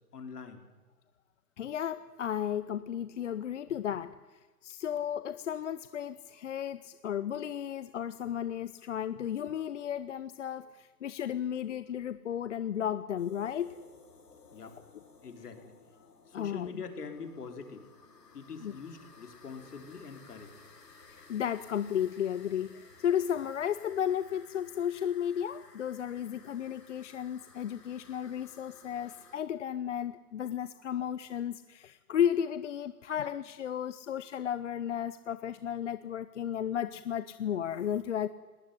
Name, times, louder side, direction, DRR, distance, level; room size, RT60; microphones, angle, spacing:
voice 1, 0.1-0.6 14.5-14.8 15.2-15.7 16.3-17.9 18.3-20.5, left 5 dB, 70° left, 6 dB, 4.2 m, -44 dB
voice 2, 1.6-13.8 16.3-16.8 18.6-18.7 21.1-38.3, left 9 dB, 50° left, 13 dB, 0.8 m, -34 dB
sound 1, 13.2-29.4, left 4 dB, 85° left, 5.7 m, -57 dB
20.5 x 19.0 x 9.7 m, 1.2 s
hypercardioid pair, 150°, 47 cm